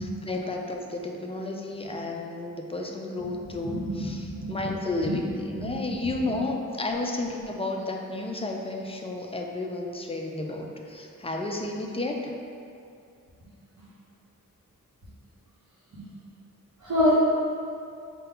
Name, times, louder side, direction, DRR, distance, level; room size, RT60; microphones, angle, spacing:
voice 1, 0.2-12.3, left 2 dB, 20° left, 1 dB, 0.3 m, -32 dB
voice 2, 3.6-4.0 4.4-4.6 5.0-5.1 5.5-5.8 15.9-16.0 16.8-17.2, left 1 dB, 55° right, -12 dB, 1.2 m, -26 dB
5.5 x 2.2 x 3.8 m, 2.5 s
wide cardioid pair, 110°, 34 cm